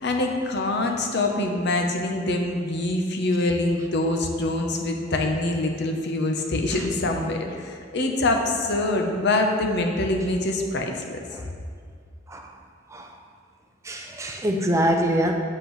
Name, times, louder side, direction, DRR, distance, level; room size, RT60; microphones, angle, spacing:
voice 1, 0.0-11.2, left 2 dB, 60° left, 3 dB, 0.8 m, -25 dB
voice 2, 13.8-15.3, equal, 15° right, 3 dB, 0.4 m, -24 dB
8.0 x 7.5 x 3.1 m, 2.1 s
head